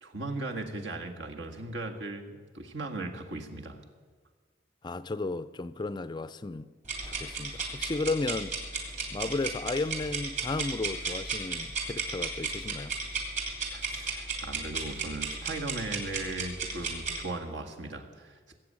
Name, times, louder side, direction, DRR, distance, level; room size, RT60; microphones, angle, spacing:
voice 1, 0.0-3.8 13.7-18.6, right 2 dB, 70° right, 1.8 m, -38 dB
voice 2, 4.8-6.7 7.1-13.0, left 3 dB, 25° left, 0.4 m, -34 dB
sound 1, 6.9-17.2, right 4 dB, 40° right, 2.9 m, -34 dB
20.0 x 7.8 x 8.8 m
head